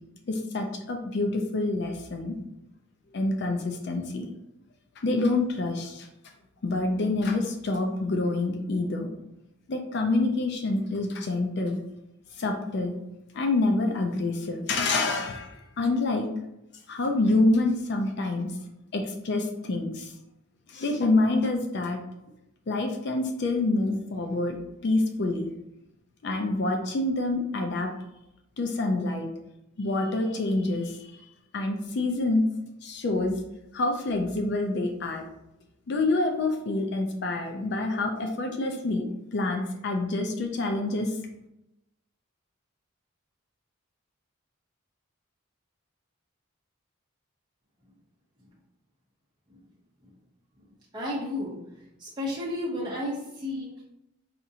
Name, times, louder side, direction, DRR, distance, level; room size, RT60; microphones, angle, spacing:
voice 1, 0.3-2.4 3.1-4.3 5.0-6.1 6.6-9.1 9.7-11.8 12.3-13.0 13.3-16.3 16.9-18.6 18.9-20.1 20.7-22.0 22.7-24.6 24.8-25.5 26.2-27.9 28.6-29.3 29.8-31.1 31.5-32.4 32.8-33.4 33.7-35.2 35.9-41.2, left 2 dB, 50° left, 3 dB, 0.4 m, -27 dB
voice 2, 50.9-53.8, left 1 dB, 20° right, -6 dB, 0.7 m, -33 dB
4.2 x 2.5 x 2.7 m, 0.87 s
head